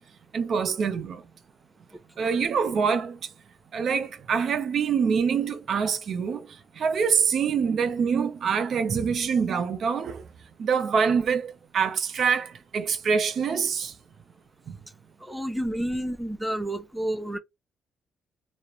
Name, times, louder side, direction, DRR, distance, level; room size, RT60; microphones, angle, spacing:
voice 1, 0.3-1.2 2.2-3.3 3.7-10.3 10.6-14.0 14.7-14.8, right 6 dB, 60° right, 0.5 m, -25 dB
voice 2, 15.3-17.4, right 1 dB, 5° right, 0.5 m, -30 dB
2.4 x 2.0 x 2.9 m
cardioid pair, 90°, 0 cm